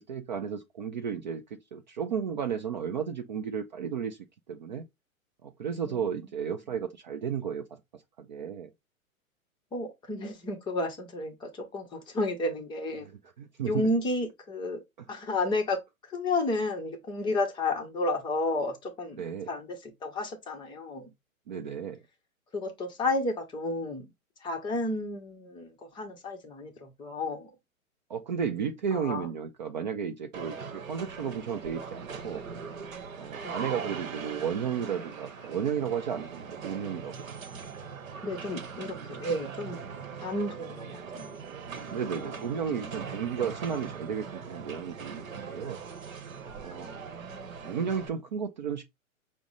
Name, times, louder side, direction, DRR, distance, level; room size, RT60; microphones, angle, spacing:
voice 1, 0.0-4.2 4.5-4.8 5.4-7.6 7.9-8.7 13.0-13.1 13.4-13.9 15.0-15.1 19.2-19.5 21.5-22.0 28.1-32.4 33.2-37.3 41.9-45.8 46.6-47.0 47.6-48.8, right 7 dB, 35° right, 0.4 m, -33 dB
voice 2, 9.7-13.1 13.7-14.8 15.1-15.8 16.1-21.1 22.5-24.1 24.4-27.5 28.9-29.3 33.4-33.6 38.2-39.8 40.2-41.4 42.2-42.3 46.7-47.7, left 2 dB, 10° left, 0.7 m, -32 dB
sound 1, 30.3-48.1, right 6 dB, 65° right, 0.9 m, -41 dB
5.8 x 2.1 x 3.9 m
figure-of-eight pair, 110°, 42 cm